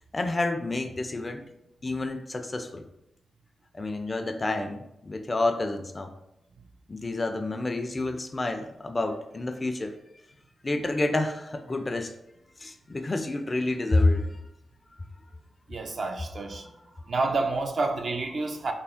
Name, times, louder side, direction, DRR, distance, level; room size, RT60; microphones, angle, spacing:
voice 1, 0.1-1.5 1.8-2.8 3.7-6.1 6.9-10.0 10.6-12.1 12.6-14.4 16.6-16.7, left 2 dB, 30° left, 0.4 m, -29 dB
voice 2, 15.7-16.7 17.1-18.7, right 3 dB, 55° right, 0.4 m, -29 dB
3.4 x 2.1 x 3.5 m
cardioid pair, 70°, 0 cm